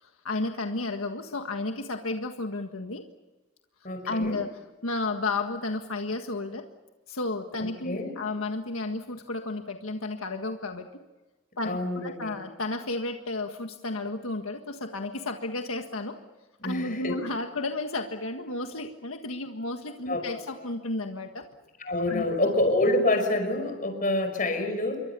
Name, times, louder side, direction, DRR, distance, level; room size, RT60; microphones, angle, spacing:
voice 1, 0.0-3.0 4.1-4.5 4.8-6.6 7.1-10.9 11.6-16.2 16.6-21.5 22.1-22.2, left 2 dB, 85° left, 5 dB, 1.7 m, -32 dB
voice 2, 3.8-4.4 7.6-8.2 11.6-12.4 16.6-17.2 20.1-20.2 21.8-25.0, left 2 dB, 40° left, 6 dB, 5.5 m, -27 dB
28.0 x 23.5 x 6.9 m, 1.2 s
head